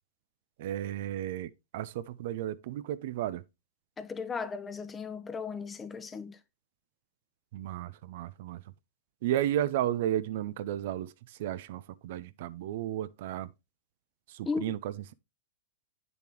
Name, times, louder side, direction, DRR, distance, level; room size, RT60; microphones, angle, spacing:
voice 1, 0.6-3.4 7.5-8.6 9.2-13.5 14.3-15.1, right 12 dB, 60° right, 0.4 m, -33 dB
voice 2, 4.0-6.4 14.4-14.7, left 5 dB, 15° left, 0.8 m, -36 dB
8.4 x 7.0 x 3.0 m
hypercardioid pair, 110°, 0 cm